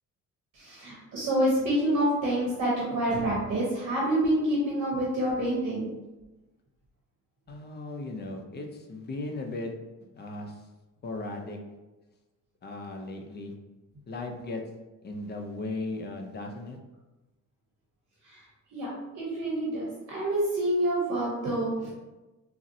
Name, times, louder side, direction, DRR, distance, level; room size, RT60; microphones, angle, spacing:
voice 1, 0.5-6.0 18.2-18.4 18.7-21.9, right 1 dB, 55° right, -5 dB, 0.8 m, -27 dB
voice 2, 7.5-9.7 10.0-10.7 11.0-11.6 12.6-13.5 14.1-14.6 15.0-16.8, left 2 dB, 30° left, 3 dB, 0.5 m, -37 dB
3.8 x 2.0 x 2.6 m, 1.1 s
cardioid pair, 105°, 32 cm